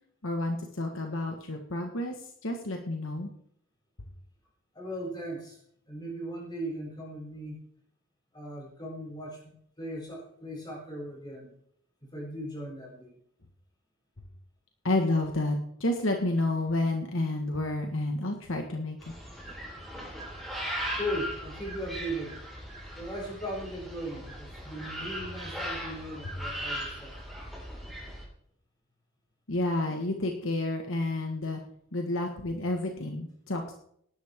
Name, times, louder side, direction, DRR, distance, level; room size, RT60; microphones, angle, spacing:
voice 1, 0.2-3.3 14.8-19.1 29.5-31.6 31.9-33.7, left 2 dB, 65° left, 3 dB, 1.6 m, -30 dB
voice 2, 4.7-5.6 5.9-7.6 8.3-11.5 12.0-13.2 21.0-22.4 22.9-27.1, equal, 20° left, -4 dB, 7.3 m, -38 dB
sound 1, 19.0-28.2, equal, ahead, 5.1 m, -38 dB
17.5 x 12.0 x 3.7 m, 0.69 s
head